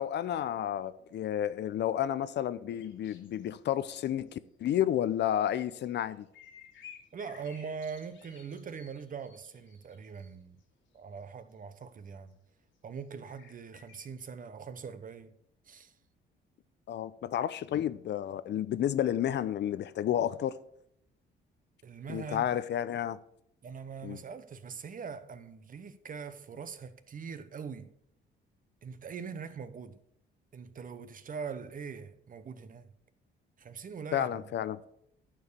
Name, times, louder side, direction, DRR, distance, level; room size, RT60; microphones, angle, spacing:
voice 1, 0.0-6.3 16.9-20.6 22.1-23.2 24.0-24.2 34.1-34.8, left 10 dB, 60° left, 0.6 m, -31 dB
sound 1, 2.8-3.6 4.0-4.3 4.9-5.0 5.8-10.3 10.6-10.7 11.8-11.9 13.0-13.1 13.3-14.1, left 7 dB, 80° left, 2.1 m, -55 dB
voice 2, 7.1-10.6 10.9-12.3 12.8-15.3 15.7-15.9 21.8-22.5 23.6-27.9 28.8-30.0 30.5-32.9 33.6-34.4, right 6 dB, 45° right, 0.9 m, -42 dB
11.0 x 4.7 x 6.6 m
cardioid pair, 90°, 20 cm